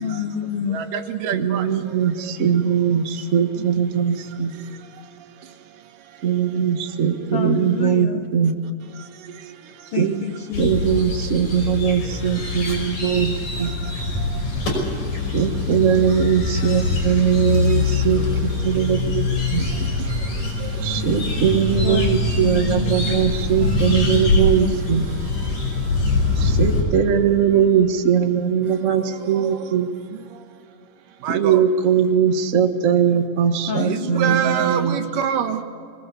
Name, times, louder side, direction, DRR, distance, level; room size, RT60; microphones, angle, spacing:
voice 1, 0.0-1.0 7.3-8.2 9.9-11.0 21.8-23.3 23.6-25.1 33.7-34.4, left 7 dB, 70° left, 6 dB, 1.4 m, -29 dB
voice 2, 0.7-1.7 20.6-20.7 22.7-22.8 29.3-29.5 31.2-31.6 33.8-35.6, right 8 dB, 85° right, 7 dB, 3.0 m, -25 dB
voice 3, 1.3-4.6 6.2-8.5 10.0-10.2 10.6-13.7 15.3-19.6 20.8-25.1 26.4-29.9 31.3-35.0, right 8 dB, 70° right, 5 dB, 0.7 m, -20 dB
sound 1, 10.5-26.8, left 3 dB, 90° left, 7.3 m, -23 dB
23.0 x 20.0 x 8.4 m, 2.4 s
omnidirectional pair, 3.7 m